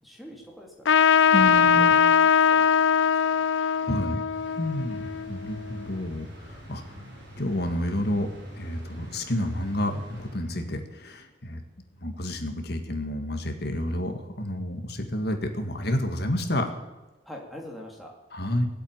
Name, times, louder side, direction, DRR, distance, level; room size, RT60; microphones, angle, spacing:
voice 1, 0.0-1.0 1.2-2.1 2.5-2.7 3.3-3.5 3.8-3.9 17.3-18.1, left 1 dB, ahead, 0 dB, 2.5 m, -44 dB
Trumpet, 0.8-5.8, left 7 dB, 75° left, 0.4 m, -21 dB
voice 2, 1.3-2.0 3.8-4.2 4.6-6.8 7.4-8.3 8.6-11.6 12.0-16.7 18.3-18.7, left 1 dB, 55° left, 5 dB, 1.9 m, -29 dB
sound 1, 4.3-11.0, equal, 65° right, 5.2 m, -45 dB
18.5 x 8.3 x 8.9 m, 1.1 s
head